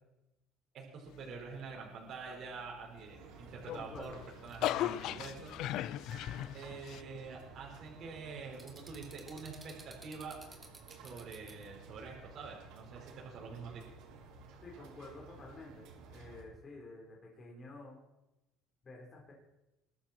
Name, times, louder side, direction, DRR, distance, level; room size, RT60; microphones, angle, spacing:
voice 1, 0.7-4.2 4.4-5.5 6.5-10.4 10.9-13.8, right 4 dB, 45° right, -1 dB, 4.9 m, -46 dB
sound 1, 2.7-16.4, right 4 dB, 70° right, 4.9 m, -54 dB
sound 2, 3.5-7.0, left 13 dB, 55° left, 0.5 m, -37 dB
voice 2, 3.7-4.2 14.6-18.0 18.8-19.3, left 2 dB, 25° left, -2 dB, 4.2 m, -50 dB
sound 3, 4.0-5.0 5.5-6.5 6.9-7.0 8.6-11.6, right 3 dB, 15° right, 2.5 m, -55 dB
21.5 x 13.0 x 4.5 m, 0.93 s
cardioid pair, 150°, 0 cm